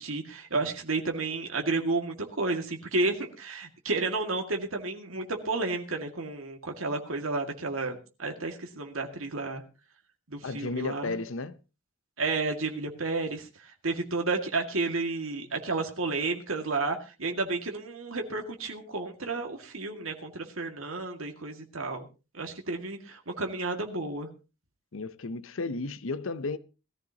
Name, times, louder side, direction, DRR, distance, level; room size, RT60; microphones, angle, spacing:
voice 1, 0.0-9.6 10.3-11.1 12.2-13.5 13.8-22.1 22.3-24.3, right 3 dB, 85° right, 2.1 m, -31 dB
voice 2, 10.4-11.6 24.9-26.6, left 3 dB, 75° left, 0.7 m, -33 dB
19.5 x 14.0 x 2.9 m
head